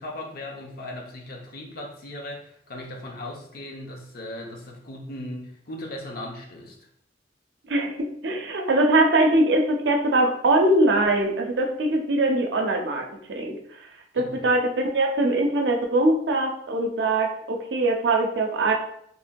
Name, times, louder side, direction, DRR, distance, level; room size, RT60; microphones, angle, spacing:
voice 1, 0.0-6.9 14.1-14.5, left 1 dB, 60° left, 0 dB, 0.6 m, -38 dB
voice 2, 7.7-13.0 13.3-13.6 14.1-18.7, right 2 dB, 80° right, 2 dB, 0.5 m, -22 dB
3.0 x 2.6 x 2.2 m, 0.68 s
head